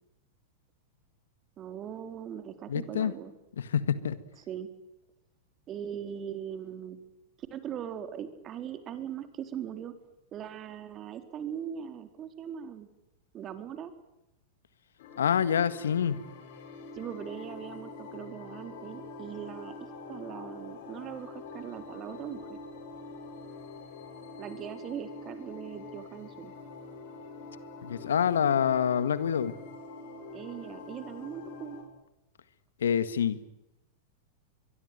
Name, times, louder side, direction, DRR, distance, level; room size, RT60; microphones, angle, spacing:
voice 1, 1.6-3.3 4.5-4.7 5.7-7.0 7.4-10.0 10.3-12.9 13.3-13.9 16.9-22.6 24.4-26.5 30.3-31.8, right 9 dB, 35° right, 9 dB, 4.0 m, -40 dB
voice 2, 2.7-3.1 3.6-4.2 15.2-16.2 27.8-29.5 32.8-33.4, left 8 dB, 80° left, 15 dB, 1.7 m, -26 dB
sound 1, 15.0-31.8, left 3 dB, 60° left, 7.3 m, -45 dB
23.5 x 23.5 x 9.2 m, 0.90 s
hypercardioid pair, 100°, 0 cm